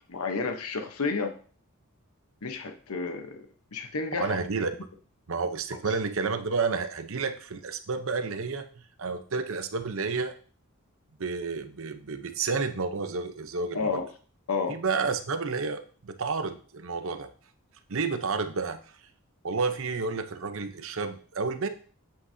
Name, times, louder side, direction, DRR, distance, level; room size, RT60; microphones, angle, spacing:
voice 1, 0.1-1.3 2.4-4.4 5.9-6.0 13.7-14.1 14.5-14.7, left 4 dB, 80° left, 5 dB, 0.9 m, -31 dB
voice 2, 4.2-4.7 5.3-8.7 9.0-10.3 11.2-13.9 14.7-17.3 17.9-18.8 19.4-21.7, right 4 dB, 65° right, 9 dB, 0.8 m, -30 dB
9.1 x 7.9 x 2.7 m, 0.41 s
head